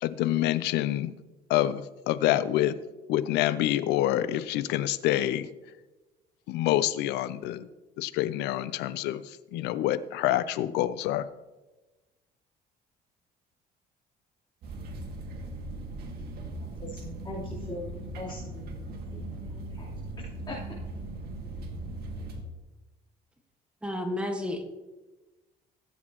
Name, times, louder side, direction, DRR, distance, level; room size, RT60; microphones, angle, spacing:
voice 1, 0.0-1.1 1.5-2.8 3.1-5.5 6.5-7.7 8.0-9.2 9.5-11.3, left 13 dB, 90° left, 16 dB, 0.6 m, -27 dB
sound 1, 14.6-22.4, right 2 dB, 70° right, 2.0 m, -39 dB
voice 2, 16.8-17.9 18.2-20.6, left 2 dB, 25° left, -8 dB, 3.7 m, -41 dB
voice 3, 23.8-24.7, left 1 dB, 5° right, 4 dB, 1.7 m, -31 dB
17.5 x 8.2 x 3.0 m, 1.1 s
cardioid pair, 110°, 17 cm